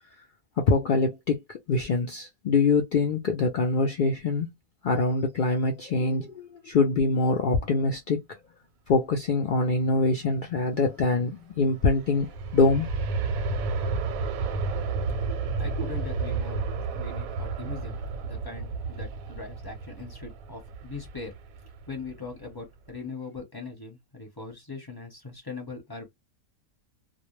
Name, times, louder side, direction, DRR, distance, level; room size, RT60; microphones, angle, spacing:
voice 1, 0.6-4.5 4.8-8.4 8.9-12.9 13.3-13.4, left 3 dB, 80° left, 0.4 m, -24 dB
Aircraft, 11.6-22.4 22.9-23.0, right 4 dB, 85° right, 1.0 m, -32 dB
voice 2, 14.6-21.3 21.9-26.1, left 3 dB, 20° left, 0.8 m, -41 dB
2.3 x 2.1 x 2.9 m
omnidirectional pair, 1.4 m